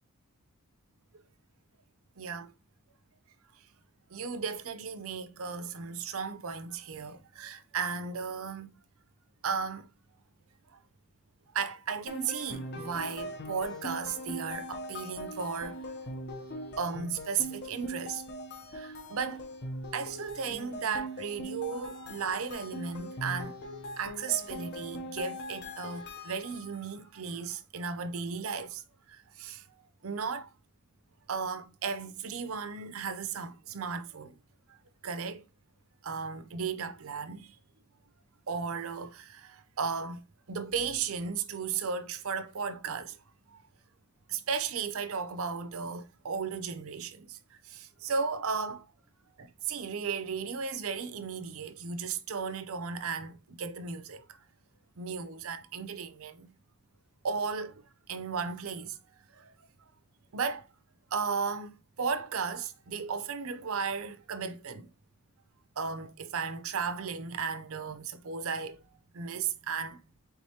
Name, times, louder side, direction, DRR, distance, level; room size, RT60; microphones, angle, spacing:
voice 1, 2.2-2.5 4.1-8.7 9.4-9.9 10.7-10.8 11.5-15.8 16.8-18.3 18.7-19.5 19.9-23.6 24.0-28.8 29.1-29.6 30.0-30.5 31.3-34.3 34.7-34.8 35.0-35.4 36.0-37.6 38.5-40.2 40.5-43.2 43.5-43.6 44.3-47.4 47.6-48.9 49.4-54.4 55.0-56.5 57.2-57.8 58.1-59.0 59.3-59.5 60.3-60.7 61.1-64.9 65.8-68.8 69.1-70.0, right 5 dB, 65° right, 0.6 m, -35 dB
sound 1, 12.1-26.8, equal, 50° left, 0.7 m, -41 dB
4.6 x 3.9 x 2.8 m
head